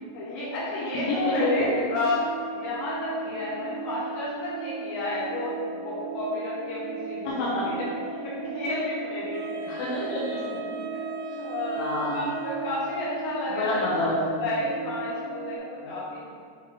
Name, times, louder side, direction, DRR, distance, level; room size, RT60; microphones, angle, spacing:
voice 1, 0.1-2.2 2.6-7.4 7.6-7.9 8.2-10.1 10.9-11.0 11.4-11.8 12.1-13.9 14.4-16.2, left 2 dB, 60° left, -7 dB, 2.7 m, -32 dB
voice 2, 1.1-1.7 7.2-7.6 9.7-10.6 11.8-12.2 13.5-14.4 15.8-15.9, left 1 dB, 80° left, -6 dB, 2.2 m, -27 dB
sound 1, 1.2-15.6, right 4 dB, 75° right, 2.1 m, -36 dB
Wind instrument woodwind instrument, 9.3-13.2, right 3 dB, 90° right, 2.9 m, -40 dB
6.8 x 4.5 x 3.3 m, 2.2 s
omnidirectional pair, 5.2 m